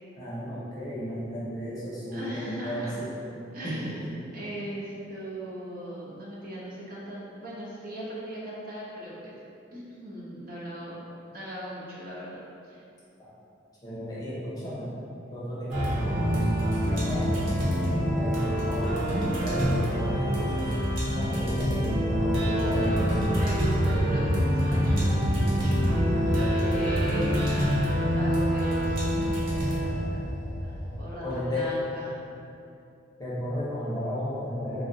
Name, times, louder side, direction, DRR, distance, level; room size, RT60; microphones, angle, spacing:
voice 1, 0.2-3.1 3.6-4.1 13.2-13.3 13.8-14.9 15.3-19.0 19.4-20.7 21.0-23.3 31.2-31.7 33.2-34.9, equal, 20° left, -9 dB, 0.6 m, -34 dB
voice 2, 2.1-3.0 3.5-9.4 9.7-11.0 11.3-12.8 22.4-23.0 23.3-27.8 28.1-29.1 29.5-30.2 30.6-32.1, right 1 dB, 50° right, -6 dB, 0.6 m, -38 dB
sound 1, 15.7-31.0, equal, 85° right, 0.7 m, -26 dB
3.5 x 2.0 x 2.6 m, 2.6 s
head